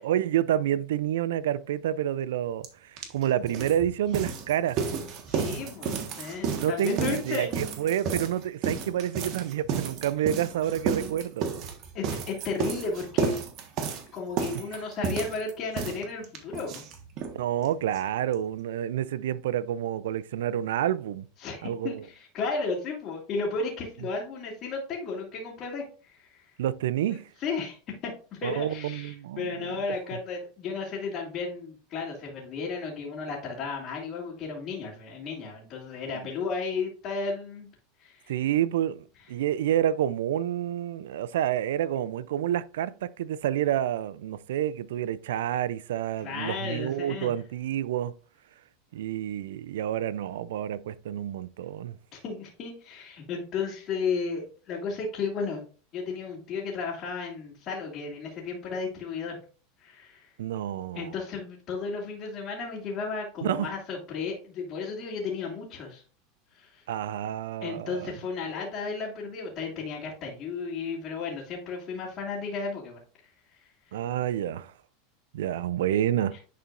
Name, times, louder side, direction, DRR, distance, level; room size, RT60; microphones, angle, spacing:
voice 1, 0.0-4.8 6.5-11.7 17.3-21.3 21.6-22.0 26.6-27.3 28.4-29.7 38.3-48.1 48.9-52.0 60.4-61.1 63.4-63.7 66.9-68.1 73.9-74.7 75.3-76.4, right 11 dB, 85° right, 0.4 m, -29 dB
sound 1, 2.6-2.7 3.0-17.4 17.6-17.7 17.9-18.0 18.3-18.4, right 6 dB, 45° right, 1.4 m, -32 dB
voice 2, 5.3-7.5 11.9-13.4 14.1-16.8 21.4-26.5 27.1-37.7 38.0-38.3 46.2-47.3 52.1-55.6 55.9-59.4 59.8-60.3 60.9-66.0 66.5-66.8 67.6-74.0 76.3-76.4, left 4 dB, 45° left, 2.3 m, -34 dB
10.5 x 4.3 x 2.5 m
supercardioid pair, 120°, 0 cm